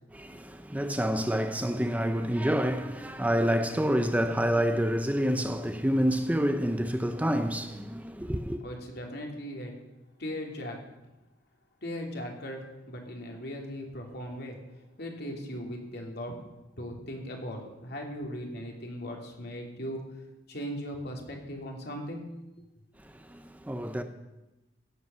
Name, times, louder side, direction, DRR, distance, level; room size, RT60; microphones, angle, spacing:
voice 1, 0.1-8.6 23.0-24.0, equal, 10° right, 0.7 m, -28 dB
voice 2, 8.6-9.7 10.2-10.8 11.8-14.6 15.0-16.3 16.8-20.0 20.5-22.2, equal, 60° left, 2.9 m, -38 dB
16.0 x 8.3 x 6.9 m
head